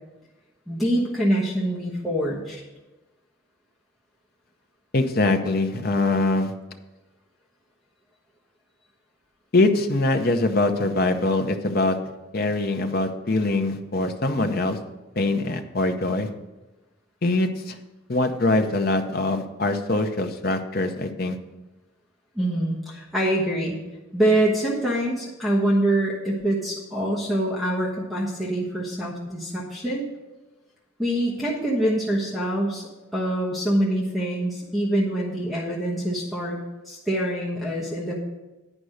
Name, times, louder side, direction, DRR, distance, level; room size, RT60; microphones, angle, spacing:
voice 1, 0.7-2.6 22.4-23.8 24.1-30.1 31.0-32.8 33.1-36.6 36.8-38.1, right 1 dB, ahead, -4 dB, 1.1 m, -25 dB
voice 2, 4.9-6.5 9.5-12.0 12.3-14.8 15.2-16.3 17.2-17.8 18.1-21.4, left 2 dB, 50° left, 6 dB, 0.7 m, -23 dB
9.9 x 5.2 x 6.4 m, 1.1 s
head